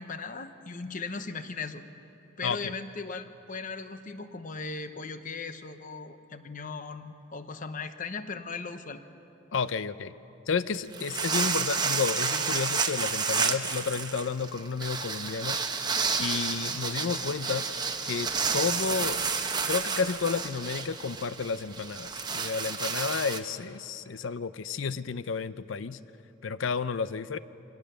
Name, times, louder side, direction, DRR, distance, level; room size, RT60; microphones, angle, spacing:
voice 1, 0.0-1.8 2.4-9.0, left 4 dB, 40° left, 9 dB, 0.9 m, -38 dB
voice 2, 2.4-2.7 9.5-10.1 10.5-15.6 16.2-17.7 18.0-19.2 19.7-26.0 26.4-27.4, left 5 dB, 70° left, 15 dB, 0.6 m, -31 dB
sound 1, 10.7-23.4, right 5 dB, 20° right, 0.9 m, -30 dB
24.5 x 17.5 x 6.8 m, 3.0 s
head